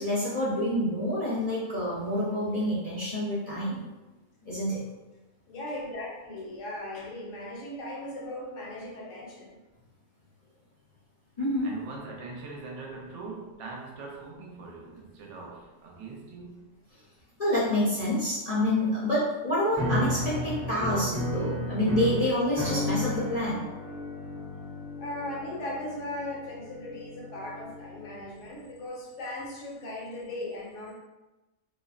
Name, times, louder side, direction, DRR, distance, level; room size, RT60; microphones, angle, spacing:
voice 1, 0.0-3.8 4.4-4.8 11.4-11.7 17.4-23.6, left 1 dB, 50° left, -10 dB, 0.4 m, -27 dB
voice 2, 5.5-9.5 25.0-30.9, left 1 dB, 75° left, -3 dB, 1.0 m, -38 dB
voice 3, 11.6-16.6, right 4 dB, 70° right, -1 dB, 0.9 m, -42 dB
sound 1, 19.7-28.1, left 1 dB, 15° right, 0.6 m, -34 dB
2.6 x 2.0 x 2.4 m, 1.1 s
omnidirectional pair, 1.4 m